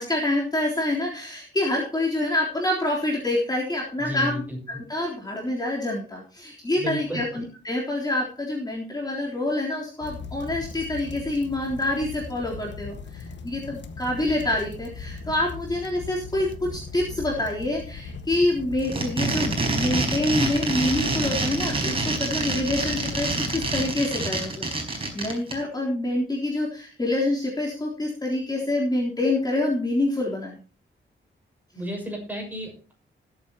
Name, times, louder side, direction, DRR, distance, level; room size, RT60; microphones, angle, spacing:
voice 1, 0.0-4.4 4.7-24.7 25.1-30.6, left 1 dB, 20° left, -3 dB, 3.7 m, -26 dB
voice 2, 4.0-4.6 6.8-7.2 31.7-32.9, equal, 10° right, 1 dB, 6.2 m, -33 dB
sound 1, 10.0-23.9, left 4 dB, 65° left, 1.6 m, -39 dB
sound 2, 18.8-25.5, right 2 dB, 30° right, 4.6 m, -26 dB
20.0 x 8.6 x 3.0 m, 0.38 s
wide cardioid pair, 130°, 20 cm